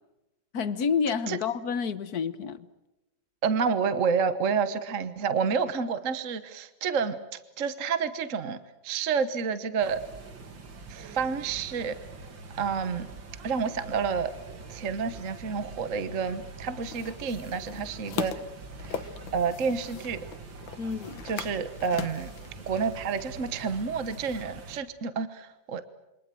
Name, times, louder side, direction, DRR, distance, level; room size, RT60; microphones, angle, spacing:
voice 1, 0.5-2.7 20.8-21.2, left 6 dB, 55° left, 1.5 m, -29 dB
voice 2, 3.4-8.6 8.8-10.0 10.9-12.0 12.6-13.1 13.4-14.3 14.7-18.4 18.8-20.2 21.2-22.3 22.7-25.8, right 6 dB, 45° right, 1.4 m, -29 dB
sound 1, 9.8-24.8, right 3 dB, 70° right, 3.1 m, -44 dB
sound 2, 16.8-24.4, left 8 dB, 70° left, 1.8 m, -41 dB
28.0 x 25.0 x 7.7 m
omnidirectional pair, 2.2 m